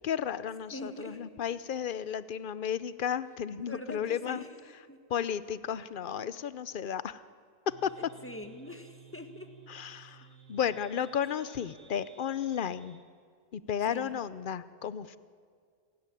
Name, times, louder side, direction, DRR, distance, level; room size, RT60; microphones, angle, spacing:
voice 1, 0.0-4.4 5.1-7.2 7.7-7.9 9.7-13.0 13.5-15.2, left 8 dB, 50° left, 16 dB, 0.7 m, -33 dB
voice 2, 0.7-1.2 3.7-4.5 4.9-5.0 8.2-9.5 10.0-10.2 13.9-14.2, left 1 dB, 10° left, 6 dB, 1.6 m, -43 dB
sound 1, 7.7-13.1, right 6 dB, 60° right, 1.8 m, -56 dB
28.0 x 13.5 x 9.9 m, 2.1 s
omnidirectional pair, 1.3 m